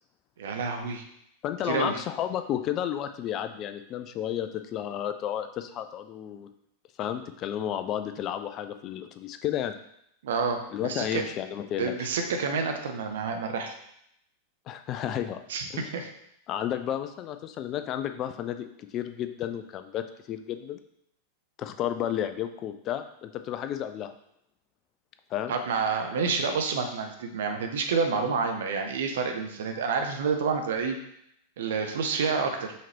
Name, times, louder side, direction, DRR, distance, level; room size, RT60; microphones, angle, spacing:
voice 1, 0.4-1.0 1.7-2.0 10.2-11.2 11.8-13.7 15.5-16.1 25.5-31.0 31.6-32.7, right 5 dB, 60° right, 5 dB, 0.7 m, -28 dB
voice 2, 1.4-6.5 7.0-9.7 10.7-11.9 14.7-15.4 15.7-15.9 16.5-18.7 18.9-20.8 21.6-24.1 25.3-25.5, left 10 dB, 35° left, 8 dB, 0.3 m, -32 dB
5.7 x 3.0 x 3.0 m, 0.74 s
figure-of-eight pair, 90°, 0 cm